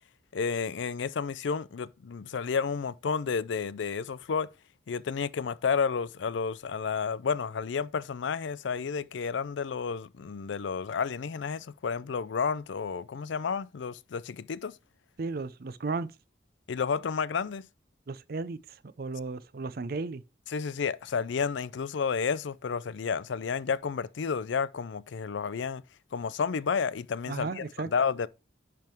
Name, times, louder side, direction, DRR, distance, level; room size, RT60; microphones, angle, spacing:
voice 1, 0.3-4.5 4.9-14.7 16.7-17.6 20.5-25.8 26.1-27.6 27.9-28.3, left 5 dB, 75° left, 0.4 m, -31 dB
voice 2, 15.2-16.1 18.1-20.2 27.3-27.9, right 3 dB, 50° right, 0.5 m, -35 dB
10.5 x 3.6 x 4.5 m
head